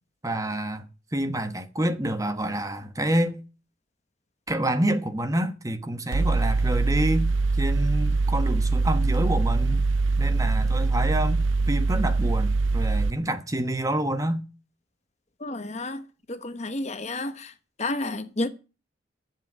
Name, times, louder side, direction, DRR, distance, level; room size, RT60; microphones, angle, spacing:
voice 1, 0.2-0.9 1.1-3.4 4.5-7.3 7.6-9.9 10.2-14.4, right 1 dB, 15° right, 1.2 m, -27 dB
Mechanical fan, 6.1-13.1, right 3 dB, 75° right, 0.6 m, -23 dB
voice 2, 15.4-16.0 16.3-17.5 17.8-18.5, left 2 dB, 35° left, 1.0 m, -30 dB
11.5 x 7.6 x 7.5 m
head